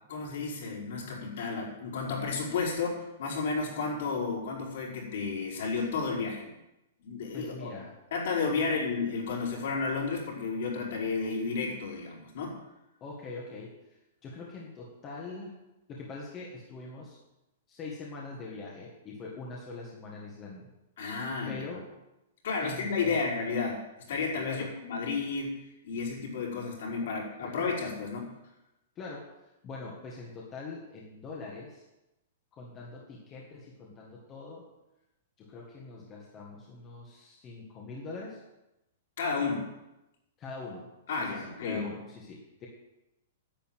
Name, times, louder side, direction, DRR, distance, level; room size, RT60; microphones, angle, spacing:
voice 1, 0.1-6.5 7.0-7.7 8.1-12.6 21.0-21.7 22.4-23.8 24.1-28.3 39.2-39.7 41.1-41.8, left 4 dB, 60° left, -2 dB, 4.9 m, -32 dB
voice 2, 7.3-8.0 8.6-8.8 13.0-13.8 14.2-15.6 15.9-17.2 17.7-20.7 21.5-21.9 22.6-23.2 24.4-24.7 27.0-27.1 27.4-27.7 29.0-29.3 29.6-31.8 32.5-34.7 35.4-38.4 40.4-42.7, left 3 dB, 20° left, -2 dB, 1.7 m, -43 dB
10.5 x 8.4 x 9.1 m, 0.94 s
hypercardioid pair, 175°, 0 cm